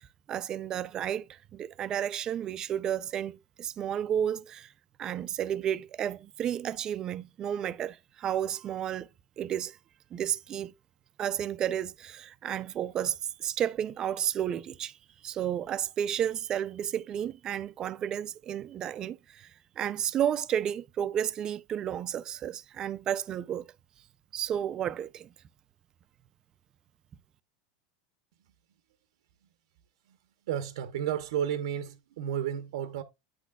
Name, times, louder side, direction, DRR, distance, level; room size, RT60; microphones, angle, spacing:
voice 1, 0.3-4.7 5.0-9.1 9.4-9.8 10.1-10.7 11.2-14.9 15.2-19.5 19.8-23.7 24.3-25.3, right 10 dB, 25° right, 0.3 m, -32 dB
voice 2, 30.5-33.0, right 9 dB, 90° right, 0.8 m, -32 dB
9.2 x 6.0 x 2.3 m
supercardioid pair, 170°, 3 cm